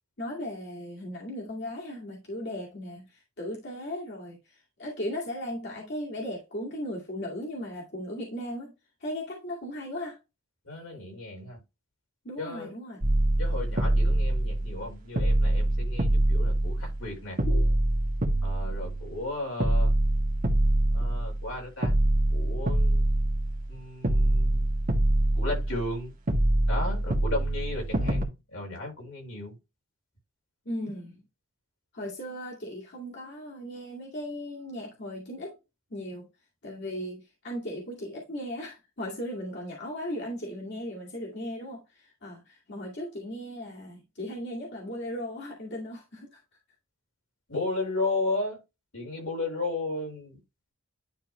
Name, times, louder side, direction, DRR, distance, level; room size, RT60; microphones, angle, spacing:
voice 1, 0.2-8.7 9.0-10.2 12.2-13.0 17.5-17.7 30.7-31.2 31.9-35.5 35.9-36.3 36.6-46.4, left 1 dB, 55° left, 2.2 m, -37 dB
voice 2, 10.6-11.6 12.4-12.7 13.4-17.4 18.4-19.9 20.9-21.9 22.3-23.0 23.7-24.6 25.3-26.1 26.7-29.5 47.5-48.6 48.9-50.4, left 2 dB, 90° left, 4.7 m, -34 dB
sound 1, 13.0-14.9 15.2-17.1 17.4-19.2 19.6-21.5 21.8-23.7 24.0-25.9 26.3-28.2, right 1 dB, 40° right, 1.6 m, -25 dB
11.0 x 3.8 x 3.2 m
head